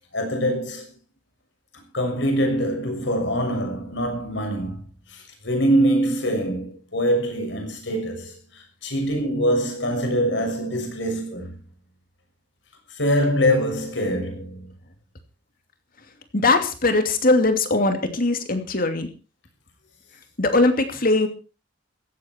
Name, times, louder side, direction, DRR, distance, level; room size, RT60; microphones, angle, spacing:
voice 1, 0.1-0.9 1.9-11.6 12.9-14.7, equal, 65° left, 6.6 m, -24 dB
voice 2, 16.3-19.1 20.4-21.3, left 2 dB, 50° left, 2.7 m, -20 dB
16.0 x 14.5 x 4.6 m
head